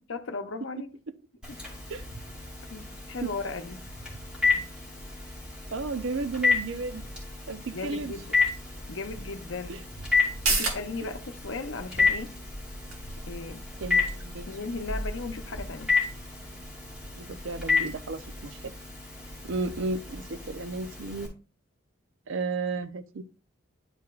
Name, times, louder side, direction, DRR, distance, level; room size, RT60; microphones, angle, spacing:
voice 1, 0.1-0.9 2.7-3.9 4.4-4.7 7.7-8.4 8.9-9.8 10.4-12.4 13.3-13.6 14.5-15.9, left 3 dB, 60° left, 0.8 m, -36 dB
Telephone, 1.4-21.3, left 4 dB, 5° right, 2.5 m, -31 dB
voice 2, 5.7-7.0 7.5-8.1 9.7-9.8 13.8-14.5 17.2-18.7 19.4-21.3 22.3-23.2, right 3 dB, 65° right, 0.6 m, -33 dB
sound 1, 10.2-17.4 17.7-17.8, right 3 dB, 90° right, 1.9 m, -36 dB
10.5 x 4.8 x 2.4 m
head